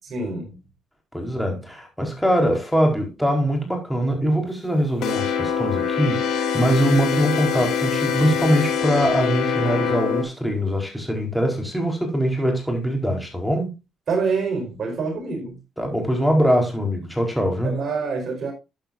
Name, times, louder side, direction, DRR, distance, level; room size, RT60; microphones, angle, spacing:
voice 1, 0.1-0.5 14.1-15.6 17.6-18.5, right 4 dB, 55° right, 4.9 m, -26 dB
voice 2, 1.1-13.7 15.8-17.8, equal, 5° left, 4.3 m, -22 dB
sound 1, 5.0-10.2, left 7 dB, 80° left, 3.3 m, -24 dB
13.0 x 8.8 x 2.6 m
cardioid pair, 90°, 0 cm